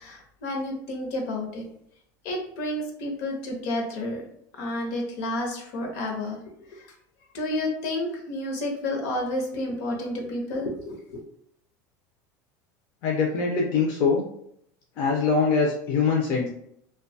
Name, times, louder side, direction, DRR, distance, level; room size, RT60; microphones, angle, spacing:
voice 1, 0.0-1.6 2.2-4.2 4.6-6.4 6.7-6.9 7.3-11.2, left 1 dB, 70° left, 1 dB, 0.8 m, -30 dB
voice 2, 13.0-14.2 15.0-16.5, left 5 dB, 45° left, -2 dB, 0.4 m, -23 dB
2.5 x 2.2 x 2.6 m, 0.72 s
supercardioid pair, 150°, 9 cm